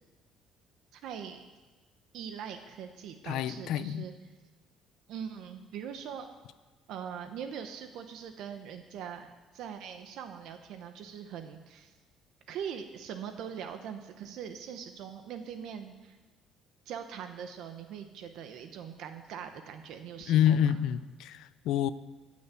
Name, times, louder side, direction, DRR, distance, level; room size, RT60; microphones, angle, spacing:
voice 1, 0.9-1.4 2.1-4.1 5.1-6.3 6.9-12.0 12.5-16.2 16.9-20.8, right 8 dB, 70° right, 7 dB, 1.0 m, -42 dB
voice 2, 3.2-4.1 20.3-21.9, left 10 dB, 70° left, 15 dB, 0.5 m, -27 dB
14.5 x 6.4 x 8.4 m, 1.2 s
cardioid pair, 140°, 0 cm